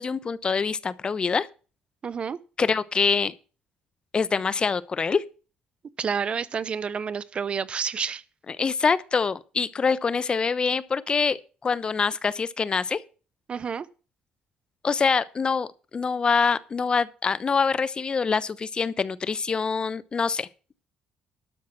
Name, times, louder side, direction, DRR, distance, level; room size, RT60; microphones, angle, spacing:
voice 1, 0.0-1.5 2.6-3.3 4.1-5.2 8.5-13.0 14.8-15.7 15.9-20.5, left 5 dB, 35° left, 0.9 m, -25 dB
voice 2, 2.0-2.4 6.0-8.2 13.5-13.9, right 6 dB, 45° right, 0.8 m, -29 dB
12.5 x 5.5 x 7.5 m
cardioid pair, 80°, 3 cm